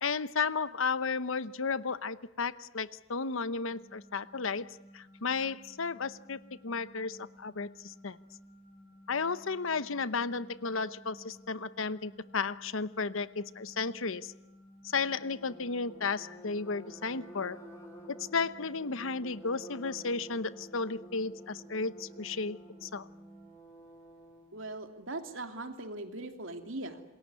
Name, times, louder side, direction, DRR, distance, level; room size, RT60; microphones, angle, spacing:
voice 1, 0.0-8.2 9.1-14.3 14.8-17.6 18.2-23.1, left 4 dB, 75° left, 15 dB, 0.9 m, -34 dB
sound 1, 3.7-23.5, equal, 45° left, 5.6 m, -55 dB
sound 2, 14.9-24.6, equal, 15° left, 5.1 m, -52 dB
voice 2, 24.5-27.0, right 2 dB, 75° right, 6 dB, 2.9 m, -40 dB
27.5 x 21.5 x 9.6 m, 0.92 s
head